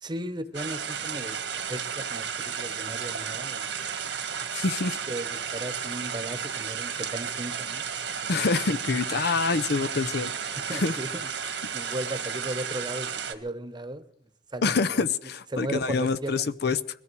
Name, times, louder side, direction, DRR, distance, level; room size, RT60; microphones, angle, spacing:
voice 1, 0.0-3.7 5.1-7.8 10.6-11.3 11.7-14.0 14.5-15.0 15.5-16.5, right 1 dB, 25° right, 11 dB, 1.1 m, -36 dB
sound 1, 0.5-13.3, right 7 dB, 80° right, 1.8 m, -33 dB
voice 2, 4.5-5.0 8.3-10.3 10.7-10.9 14.6-16.8, left 4 dB, 65° left, 12 dB, 0.6 m, -26 dB
21.0 x 14.0 x 4.8 m, 0.68 s
head